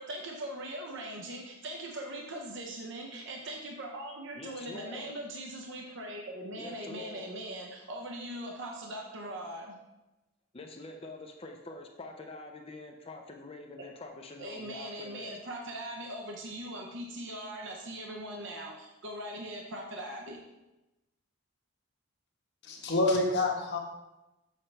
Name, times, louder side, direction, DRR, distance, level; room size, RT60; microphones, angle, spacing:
voice 1, 0.0-9.7 14.4-20.4, right 1 dB, 55° right, 0 dB, 0.8 m, -40 dB
voice 2, 4.4-5.1 6.5-7.3 10.5-15.4, left 2 dB, 25° left, 3 dB, 0.5 m, -45 dB
voice 3, 22.6-23.8, left 2 dB, 50° left, 0 dB, 1.2 m, -27 dB
7.5 x 5.5 x 3.3 m, 1.0 s
head